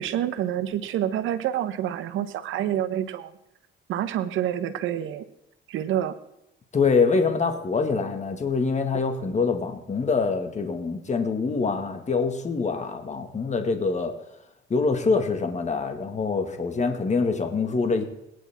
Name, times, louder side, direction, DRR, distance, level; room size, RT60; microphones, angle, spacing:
voice 1, 0.0-3.3 3.9-5.2 5.7-6.1, right 11 dB, 85° right, 11 dB, 1.2 m, -27 dB
voice 2, 6.7-14.1 14.7-18.0, left 4 dB, 35° left, 6 dB, 2.0 m, -25 dB
21.5 x 10.0 x 3.7 m, 0.86 s
cardioid pair, 90°, 20 cm